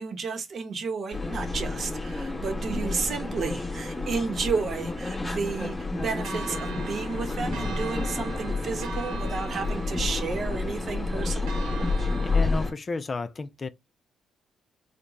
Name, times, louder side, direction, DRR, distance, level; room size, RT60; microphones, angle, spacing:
voice 1, 0.0-11.5, right 5 dB, 50° right, 0.8 m, -32 dB
sound 1, 1.1-12.7, left 3 dB, 15° left, 1.0 m, -30 dB
sound 2, 5.8-10.3, left 6 dB, 90° left, 0.6 m, -45 dB
Church bell, 6.2-12.7, right 5 dB, 90° right, 0.4 m, -41 dB
voice 2, 12.1-13.7, left 4 dB, 35° left, 0.3 m, -32 dB
3.8 x 2.2 x 2.9 m
cardioid pair, 90°, 0 cm